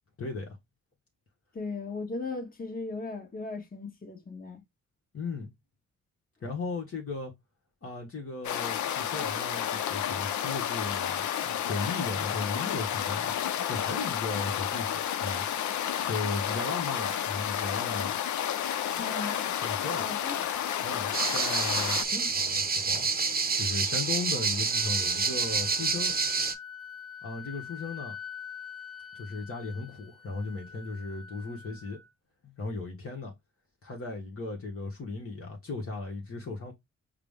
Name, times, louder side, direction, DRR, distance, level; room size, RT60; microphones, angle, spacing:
voice 1, 0.2-0.6 5.1-5.5 6.4-7.3 7.8-13.3 13.7-15.5 16.0-18.2 19.6-20.1 20.8-23.1 23.5-26.1 27.2-28.1 29.1-32.0 32.4-33.3 33.8-36.7, left 3 dB, 50° left, 1.1 m, -36 dB
voice 2, 1.5-4.6 19.0-19.5 20.0-20.4, left 3 dB, 30° left, 1.3 m, -37 dB
sound 1, 8.4-22.0, left 10 dB, 75° left, 0.5 m, -31 dB
sound 2, 21.1-26.5, right 4 dB, 30° right, 0.7 m, -28 dB
Wind instrument woodwind instrument, 24.3-32.1, left 7 dB, ahead, 1.0 m, -45 dB
4.8 x 2.1 x 3.5 m
cardioid pair, 70°, 30 cm